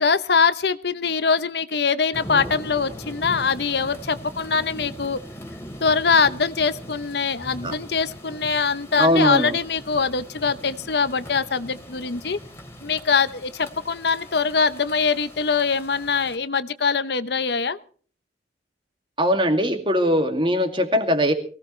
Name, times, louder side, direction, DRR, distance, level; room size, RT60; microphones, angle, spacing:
voice 1, 0.0-5.2 5.8-12.4 12.8-17.8, left 5 dB, 65° left, 13 dB, 0.8 m, -23 dB
sound 1, 2.1-16.4, equal, 15° left, 2.7 m, -40 dB
voice 2, 9.0-9.6 19.2-21.3, equal, 30° right, 6 dB, 2.3 m, -20 dB
22.5 x 17.0 x 3.2 m, 0.43 s
head